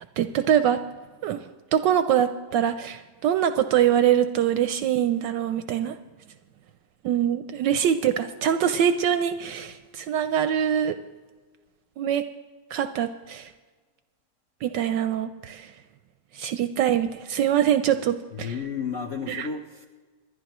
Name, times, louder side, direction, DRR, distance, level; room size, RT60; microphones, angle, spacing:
voice 1, 0.2-0.8 1.2-6.0 7.0-11.0 12.0-12.2 12.7-13.5 14.6-15.7 16.3-18.5 19.3-19.5, right 9 dB, 75° right, 10 dB, 1.1 m, -24 dB
voice 2, 18.3-19.9, left 6 dB, 55° left, 2 dB, 0.8 m, -32 dB
27.0 x 11.0 x 3.0 m, 1.4 s
omnidirectional pair, 2.3 m